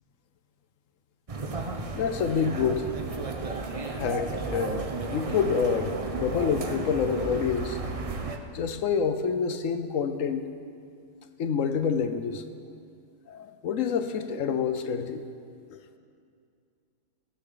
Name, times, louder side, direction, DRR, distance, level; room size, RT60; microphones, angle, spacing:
sound 1, 1.3-8.4, right 3 dB, 40° right, 0.5 m, -33 dB
voice 1, 1.9-2.9 3.9-7.8 8.5-10.5 11.4-12.4 13.3-15.2 15.7-15.8, left 6 dB, 60° left, 10 dB, 1.0 m, -27 dB
17.5 x 15.0 x 3.9 m, 2.3 s
omnidirectional pair, 1.8 m